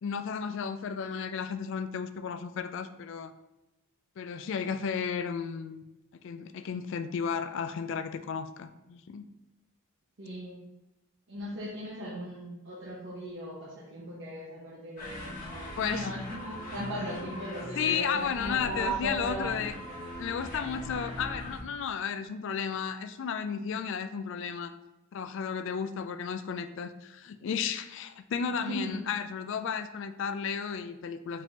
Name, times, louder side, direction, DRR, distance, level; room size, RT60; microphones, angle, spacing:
voice 1, 0.0-3.3 4.2-5.8 6.2-9.2 15.8-16.1 17.8-19.7 20.2-24.7 25.1-31.4, left 6 dB, 55° left, 10 dB, 0.3 m, -33 dB
voice 2, 10.2-10.6 11.3-19.5 28.6-28.9, right 1 dB, 55° right, -7 dB, 0.9 m, -37 dB
sound 1, 15.0-21.6, left 1 dB, 40° left, 1.2 m, -40 dB
4.9 x 3.6 x 2.8 m, 0.99 s
head